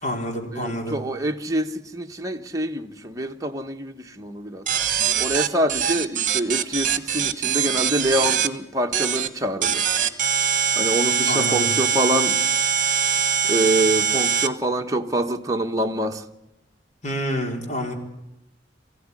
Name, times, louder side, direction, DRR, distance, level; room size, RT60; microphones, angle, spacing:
voice 1, 0.0-1.0 11.3-11.7 17.0-17.9, equal, 40° left, 4.5 m, -28 dB
voice 2, 0.5-4.6 5.2-9.8 10.8-12.4 13.5-16.2, right 1 dB, 20° right, 1.4 m, -25 dB
sound 1, 4.7-8.5 8.9-9.3 9.6-14.5, right 7 dB, 45° right, 1.3 m, -22 dB
22.5 x 16.0 x 9.9 m
head